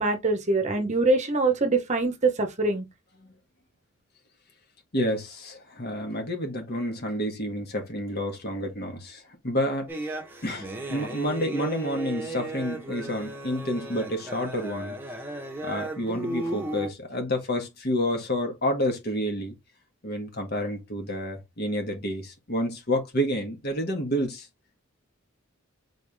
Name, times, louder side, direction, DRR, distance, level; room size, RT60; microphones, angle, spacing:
voice 1, 0.0-2.9, right 3 dB, 35° right, 0.9 m, -24 dB
voice 2, 4.9-15.0 15.6-19.5 20.0-24.5, equal, 45° left, 1.5 m, -29 dB
sound 1, 9.9-16.9, right 1 dB, 10° right, 1.0 m, -35 dB
4.2 x 3.5 x 3.4 m
head